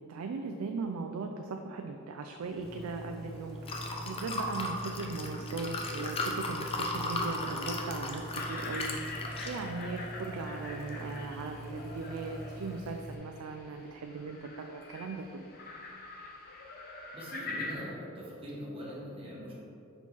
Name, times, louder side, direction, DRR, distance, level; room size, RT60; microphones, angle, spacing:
voice 1, 0.0-9.2 9.5-15.5, right 4 dB, 85° right, 4 dB, 0.4 m, -38 dB
sound 1, 2.4-12.7, equal, ahead, 0.9 m, -53 dB
Liquid, 2.6-13.2, left 1 dB, 25° left, 0.5 m, -38 dB
sound 2, 8.3-17.7, left 3 dB, 45° left, 0.8 m, -44 dB
voice 2, 17.1-19.5, equal, 25° right, -6 dB, 1.4 m, -42 dB
5.5 x 4.4 x 4.5 m, 2.7 s
head